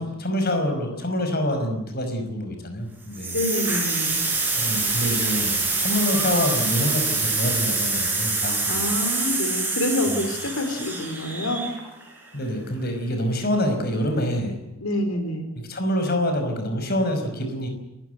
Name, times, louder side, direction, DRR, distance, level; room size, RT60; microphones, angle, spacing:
voice 1, 0.0-3.4 4.6-9.0 10.0-10.3 12.3-14.6 15.7-17.7, left 1 dB, 45° left, 6 dB, 5.4 m, -26 dB
sound 1, 3.1-12.0, right 3 dB, 10° right, 7.6 m, -25 dB
voice 2, 3.3-4.3 8.7-11.6 14.8-15.5, left 1 dB, 85° left, 6 dB, 4.1 m, -27 dB
29.5 x 15.5 x 9.4 m, 0.96 s
head